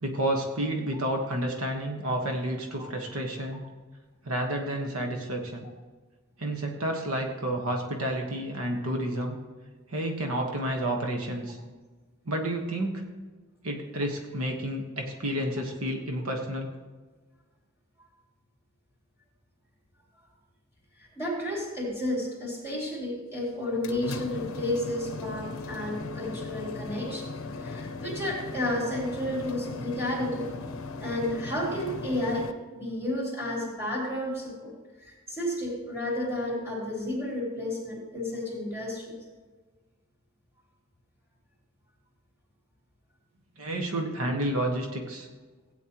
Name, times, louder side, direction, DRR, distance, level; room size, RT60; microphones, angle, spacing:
voice 1, 0.0-3.6 4.2-5.6 6.4-9.4 9.9-11.6 12.2-13.0 13.6-16.7 43.6-45.3, right 1 dB, 80° right, 2 dB, 1.4 m, -30 dB
voice 2, 21.0-27.3 27.6-30.5 31.0-39.2, left 1 dB, 10° right, -5 dB, 3.8 m, -32 dB
sound 1, 23.6-32.5, left 3 dB, 70° left, 0.7 m, -38 dB
16.5 x 9.4 x 3.0 m, 1.4 s
head